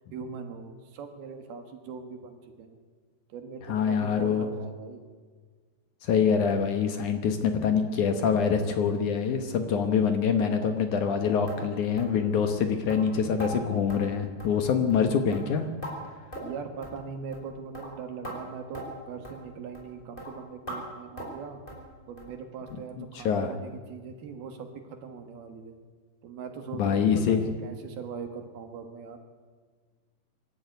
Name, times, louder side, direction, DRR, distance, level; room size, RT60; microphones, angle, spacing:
voice 1, 0.1-2.8 3.3-5.0 16.4-21.6 22.1-25.8 26.2-29.2, right 5 dB, 70° right, 6 dB, 3.5 m, -41 dB
voice 2, 3.7-4.5 6.0-15.7 23.0-23.6 26.8-27.5, left 6 dB, 65° left, 7 dB, 2.2 m, -25 dB
sound 1, 11.5-11.6 12.0-12.1 12.5-12.6 12.9-13.0 13.4-13.5 13.9-14.0 14.4-14.6 14.9-15.1 15.3-15.9 16.3-16.6 16.8-17.0 17.3-17.5 17.7-17.9 18.2-18.4 18.7-18.9 19.2-19.4 19.7-19.9 20.2-20.3 20.7-20.8 21.2-21.4 21.7-21.8 22.2-22.3 22.7-22.8 23.2-23.3 23.7-23.8, equal, 10° left, 4.7 m, -40 dB
24.5 x 13.0 x 9.3 m, 1.5 s
omnidirectional pair, 4.7 m